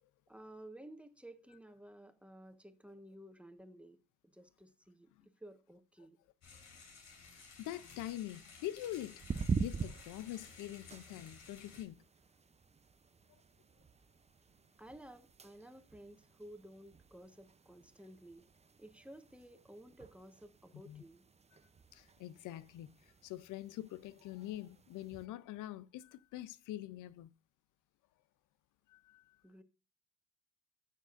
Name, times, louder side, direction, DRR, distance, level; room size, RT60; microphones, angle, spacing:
voice 1, 0.3-6.2 14.8-18.5 18.8-21.2 29.4-29.6, right 1 dB, 5° right, 1.3 m, -54 dB
sound 1, 6.4-11.8, left 4 dB, 60° left, 4.5 m, -56 dB
voice 2, 7.3-9.2 9.6-12.0 20.9-21.0 21.9-22.9 23.2-27.3 28.9-29.4, left 14 dB, 90° left, 0.6 m, -44 dB
sound 2, 9.2-25.3, right 5 dB, 20° right, 0.6 m, -45 dB
14.5 x 6.5 x 2.5 m
cardioid pair, 90°, 30 cm